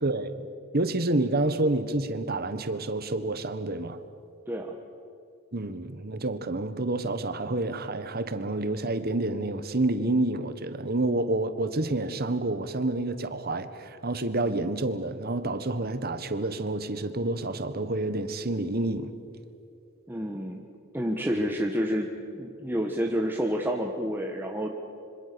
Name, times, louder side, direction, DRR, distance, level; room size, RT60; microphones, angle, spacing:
voice 1, 0.7-4.0 5.5-19.1 21.4-21.5, right 2 dB, 45° right, 11 dB, 1.5 m, -28 dB
voice 2, 20.1-20.7 20.9-22.1 22.3-24.7, equal, 10° right, 1 dB, 1.4 m, -29 dB
26.5 x 25.0 x 7.0 m, 2.6 s
head